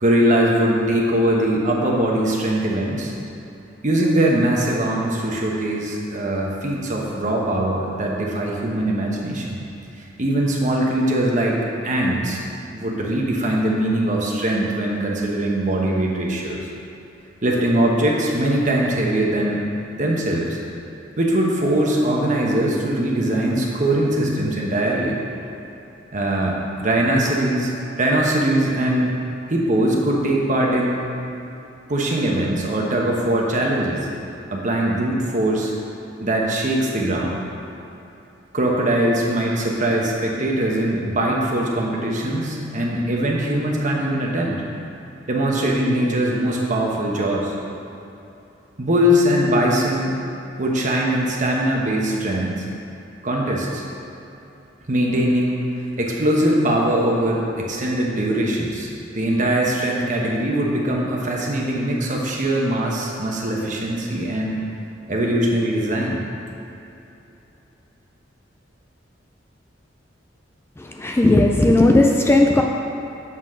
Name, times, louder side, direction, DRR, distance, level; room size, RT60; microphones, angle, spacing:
voice 1, 0.0-3.1 3.8-9.6 10.0-12.4 12.7-16.6 17.4-19.7 20.0-20.6 21.2-25.2 26.1-27.7 28.0-29.1 29.5-31.0 31.9-34.0 34.5-35.7 36.2-37.3 38.5-44.6 45.3-47.5 48.8-50.2 50.6-52.7 53.2-53.8 54.9-55.6 56.0-64.6 65.1-66.2, right 1 dB, 45° right, -2 dB, 1.1 m, -21 dB
voice 2, 70.8-72.6, left 2 dB, 15° left, 1 dB, 0.3 m, -16 dB
7.4 x 4.2 x 6.3 m, 2.9 s
head